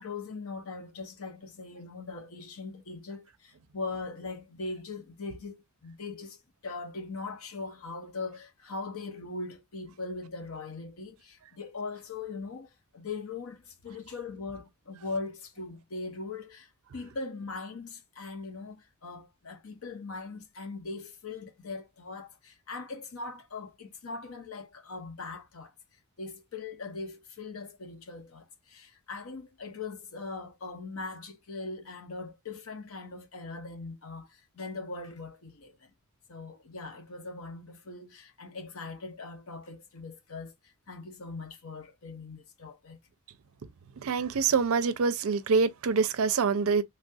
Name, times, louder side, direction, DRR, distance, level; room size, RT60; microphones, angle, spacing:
voice 1, 0.0-25.7 26.2-35.9 36.3-43.0, left 3 dB, 65° left, 0.7 m, -40 dB
voice 2, 44.0-46.8, right 5 dB, 65° right, 0.4 m, -25 dB
3.3 x 2.3 x 2.6 m
head